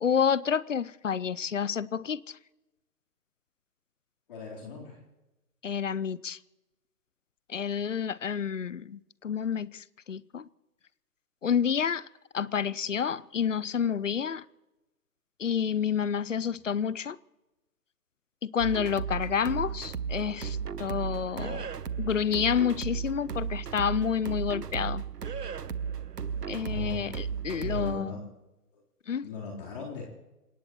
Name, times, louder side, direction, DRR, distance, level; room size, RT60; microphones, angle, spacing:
voice 1, 0.0-2.4 5.6-6.4 7.5-10.5 11.4-12.1 12.3-14.4 15.4-17.2 18.4-21.7 22.0-25.0 26.5-28.1 29.1-29.3, left 7 dB, 50° left, 0.7 m, -29 dB
voice 2, 4.3-5.0 16.3-16.5 26.6-27.1 27.6-28.2 28.7-28.8 29.2-30.0, left 4 dB, 35° left, 3.9 m, -39 dB
sound 1, 18.6-28.0, right 7 dB, 75° right, 1.0 m, -35 dB
27.5 x 17.0 x 3.1 m
figure-of-eight pair, 145°, 47 cm